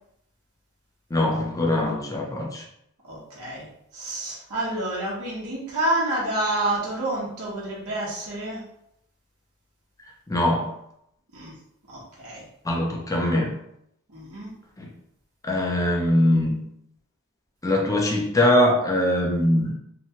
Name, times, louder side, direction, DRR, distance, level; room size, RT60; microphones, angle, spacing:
voice 1, 1.1-2.6 10.3-10.7 12.6-13.5 14.8-14.9 15.4-16.6 17.6-19.7, left 1 dB, 15° left, -1 dB, 0.5 m, -22 dB
voice 2, 3.1-3.7 3.9-8.6 11.3-11.6 11.9-12.4 14.1-14.5, right 1 dB, 75° right, -7 dB, 1.0 m, -28 dB
2.8 x 2.2 x 2.8 m, 0.76 s
head